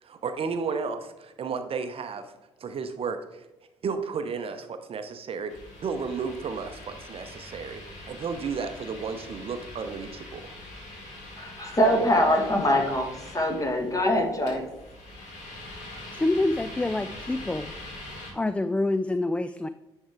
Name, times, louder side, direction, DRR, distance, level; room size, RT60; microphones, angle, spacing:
voice 1, 0.0-2.3 2.6-3.5 3.8-5.5 5.8-10.4, right 5 dB, 45° right, 8 dB, 0.7 m, -33 dB
sound 1, 5.5-18.3, left 1 dB, 65° left, 2.3 m, -43 dB
voice 2, 11.4-14.6, equal, 25° left, 3 dB, 1.8 m, -23 dB
voice 3, 16.1-17.7 18.3-19.7, left 2 dB, 10° left, 12 dB, 0.3 m, -26 dB
10.0 x 3.6 x 4.6 m, 0.98 s
figure-of-eight pair, 45°, 14 cm